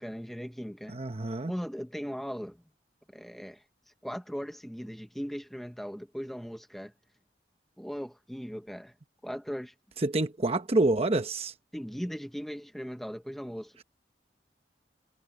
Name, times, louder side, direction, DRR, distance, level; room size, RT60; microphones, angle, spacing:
voice 1, 0.0-1.0 1.5-2.6 3.1-3.6 4.0-6.9 7.8-8.9 9.2-9.7 11.7-13.8, equal, ahead, 1.1 m, -38 dB
voice 2, 0.9-1.5 10.0-11.5, right 2 dB, 35° right, 1.0 m, -27 dB
head